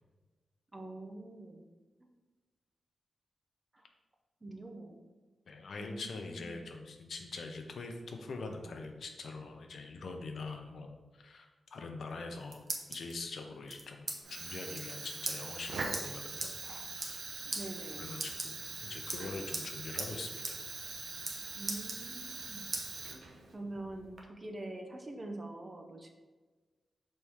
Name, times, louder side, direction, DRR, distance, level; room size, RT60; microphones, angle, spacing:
voice 1, 0.7-1.7 3.7-3.8 4.4-5.0 5.8-6.7 17.5-18.1 21.6-22.7 23.1-23.3 23.5-26.1, right 2 dB, 20° right, 3 dB, 0.6 m, -45 dB
voice 2, 5.5-16.5 17.0-17.5 18.0-20.6, left 3 dB, 65° left, 4 dB, 0.7 m, -44 dB
sound 1, 12.1-13.1 13.7-14.2 14.4-14.5 14.7-14.9 15.2-15.4 15.9-16.0 16.4-16.5 16.9-17.2 17.5-17.6 18.1-18.8 19.1-19.7 20.0-20.1 20.4-20.6 20.8-21.4 21.7-22.4 22.7-22.9 23.3-24.2, right 2 dB, 45° right, 0.9 m, -39 dB
Fire, 14.2-23.5, right 4 dB, 75° right, 0.8 m, -43 dB
6.3 x 4.2 x 3.5 m, 1.3 s
wide cardioid pair, 145°, 0 cm